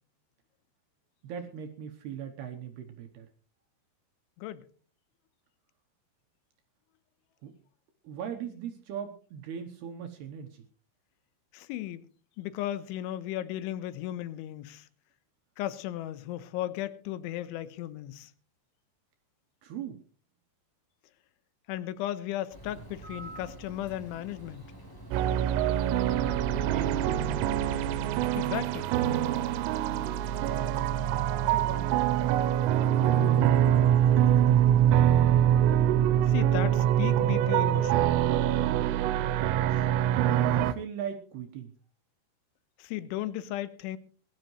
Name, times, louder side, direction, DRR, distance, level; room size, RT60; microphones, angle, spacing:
voice 1, 1.2-3.3 7.4-7.5 8.0-10.6 19.6-20.0 26.5-27.8 31.4-34.5 40.5-41.7, right 7 dB, 70° right, 2.6 m, -40 dB
voice 2, 11.5-12.1 12.4-14.9 15.6-18.3 21.7-24.7 28.3-28.9 36.2-38.1 42.8-44.0, left 13 dB, 80° left, 3.2 m, -35 dB
Bird, 22.5-28.3, right 1 dB, 10° left, 1.4 m, -47 dB
sound 1, 25.1-40.7, right 11 dB, 90° right, 3.4 m, -24 dB
21.5 x 13.0 x 3.2 m
omnidirectional pair, 5.7 m